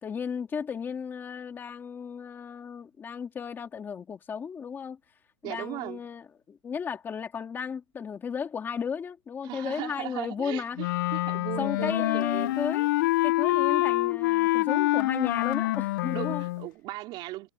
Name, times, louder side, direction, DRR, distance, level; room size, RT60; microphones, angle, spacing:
voice 1, 0.0-5.0 5.4-10.8 11.6-12.9 13.2-16.4, left 6 dB, 10° left, 2.6 m, -34 dB
voice 2, 5.4-6.0 9.4-12.6 16.1-17.5, right 18 dB, 30° right, 4.1 m, -38 dB
Wind instrument woodwind instrument, 10.8-16.7, left 18 dB, 40° left, 0.4 m, -26 dB
supercardioid pair, 165°, 17 cm